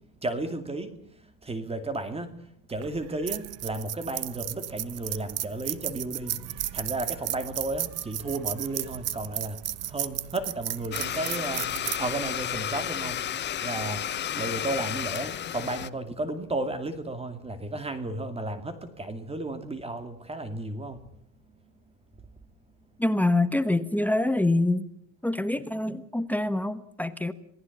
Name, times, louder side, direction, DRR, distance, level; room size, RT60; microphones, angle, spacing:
voice 1, 0.2-14.0 14.3-21.1 21.5-21.6, right 2 dB, 15° right, 9 dB, 2.4 m, -33 dB
sound 1, 2.7-13.2, right 13 dB, 45° right, 1.1 m, -35 dB
Domestic sounds home sounds, 10.9-15.9, left 10 dB, 30° left, 0.9 m, -32 dB
voice 2, 23.0-24.9 25.2-27.3, left 2 dB, 5° left, 11 dB, 1.2 m, -25 dB
27.0 x 18.5 x 7.3 m, 0.68 s
supercardioid pair, 115°, 35 cm